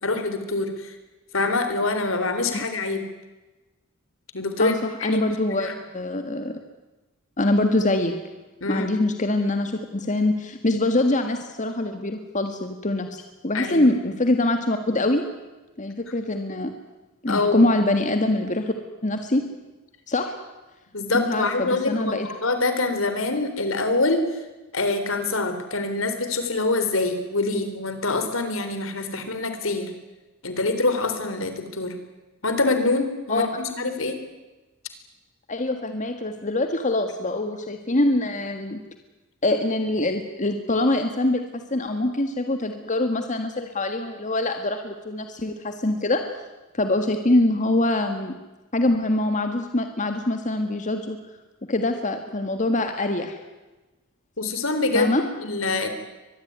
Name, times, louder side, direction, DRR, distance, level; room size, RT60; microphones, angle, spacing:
voice 1, 0.0-0.9 1.3-3.1 4.3-5.2 5.6-5.7 8.6-8.9 13.5-13.9 17.3-17.7 20.9-24.4 24.7-29.9 30.4-31.9 32.4-34.2 54.4-55.9, left 3 dB, 70° left, 8 dB, 3.7 m, -25 dB
voice 2, 4.6-6.5 7.4-8.1 8.7-15.2 15.8-16.7 17.2-18.7 19.0-19.4 20.1-20.3 21.1-22.3 33.3-33.5 35.5-38.8 39.4-41.4 41.7-46.2 46.7-48.3 48.7-51.2 51.7-53.4 54.9-55.2, left 2 dB, 35° left, 6 dB, 1.8 m, -24 dB
24.0 x 21.0 x 9.5 m, 1.1 s
head